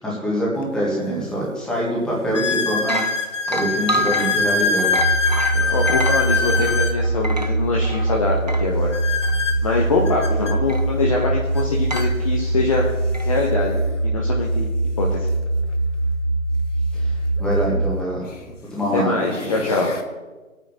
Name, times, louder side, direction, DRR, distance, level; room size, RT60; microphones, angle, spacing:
voice 1, 0.0-3.0 3.5-4.9 16.9-18.3 18.7-19.1 19.4-19.5, right 1 dB, ahead, -5 dB, 1.5 m, -24 dB
sound 1, 0.6-0.7 1.4-1.5 2.3-7.0 8.9-10.6 11.6-11.7 11.9-12.1 12.9-13.0 15.2-15.3 17.4-17.5 18.2-18.5 19.1-20.0, left 4 dB, 60° left, 1.3 m, -24 dB
sound 2, 2.3-2.4 2.8-8.8 9.2-9.4 10.7-11.3 11.9-12.2 13.1-13.3, right 1 dB, 35° right, 0.4 m, -29 dB
sound 3, 4.9-18.0, right 2 dB, 55° right, 2.2 m, -22 dB
voice 2, 5.5-9.0 9.6-12.9 13.3-14.7 15.0-15.2 18.9-19.9, left 3 dB, 25° left, -1 dB, 0.9 m, -23 dB
26.0 x 9.0 x 3.0 m, 1.3 s
figure-of-eight pair, 145°, 41 cm